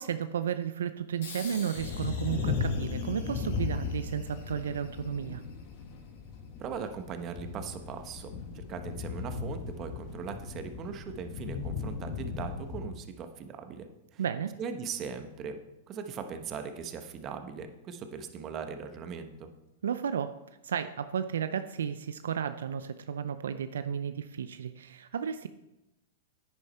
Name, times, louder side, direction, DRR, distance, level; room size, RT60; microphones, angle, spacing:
voice 1, 0.0-5.4 14.2-14.5 19.8-20.3 20.6-25.5, right 8 dB, 85° right, 10 dB, 0.5 m, -33 dB
sound 1, 1.2-6.2, left 4 dB, 70° left, 4.7 m, -49 dB
sound 2, 1.8-12.8, left 5 dB, 50° left, 1.9 m, -36 dB
voice 2, 6.6-14.2 14.6-15.6 15.9-19.5, right 6 dB, 35° right, 7 dB, 1.3 m, -39 dB
10.0 x 9.6 x 4.4 m, 0.95 s
hypercardioid pair, 120°, 0 cm